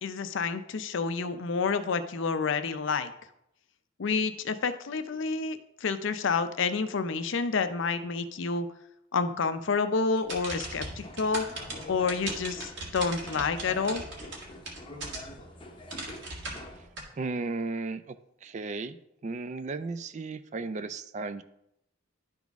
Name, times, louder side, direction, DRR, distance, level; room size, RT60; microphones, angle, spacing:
voice 1, 0.0-3.1 4.0-8.7 9.1-11.5 11.9-14.0, left 4 dB, 65° left, 10 dB, 0.5 m, -29 dB
sound 1, 10.2-15.5 15.9-17.0, right 2 dB, 65° right, 1.8 m, -39 dB
sound 2, 10.6-16.9, left 1 dB, 25° left, 0.7 m, -46 dB
voice 2, 17.2-18.1 18.4-19.0 19.2-21.4, right 3 dB, 35° right, 13 dB, 0.4 m, -34 dB
11.5 x 4.0 x 3.5 m, 0.80 s
head